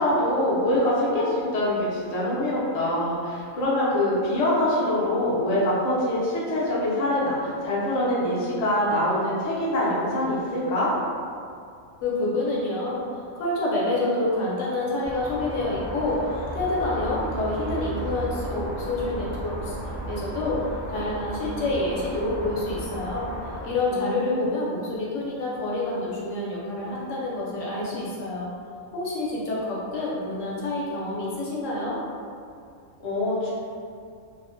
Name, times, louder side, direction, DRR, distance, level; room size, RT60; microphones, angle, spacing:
voice 1, 0.0-10.9 23.9-24.4 33.0-33.5, left 1 dB, 50° left, -8 dB, 0.4 m, -24 dB
voice 2, 12.0-16.2 16.5-19.8 20.1-20.6 20.9-23.3 23.6-28.5 28.9-32.0, left 2 dB, 70° left, -5 dB, 0.8 m, -28 dB
sound 1, 15.0-23.7, right 1 dB, 35° right, 0.4 m, -34 dB
2.6 x 2.1 x 2.5 m, 2.3 s
omnidirectional pair, 1.4 m